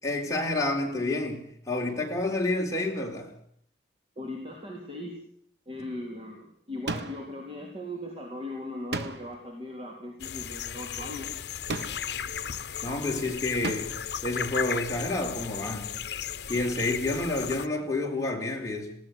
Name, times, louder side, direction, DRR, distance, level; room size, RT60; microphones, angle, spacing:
voice 1, 0.0-3.3 12.8-15.9 16.5-19.0, left 2 dB, 20° left, 4.3 m, -29 dB
voice 2, 4.2-5.1 5.7-11.3, left 1 dB, 30° right, 3.9 m, -38 dB
sound 1, 6.9-7.4 8.9-9.5 11.7-12.2 13.6-14.1, right 2 dB, 70° right, 1.5 m, -35 dB
sound 2, 10.2-17.7, left 8 dB, 70° left, 0.9 m, -35 dB
20.0 x 17.5 x 8.1 m
head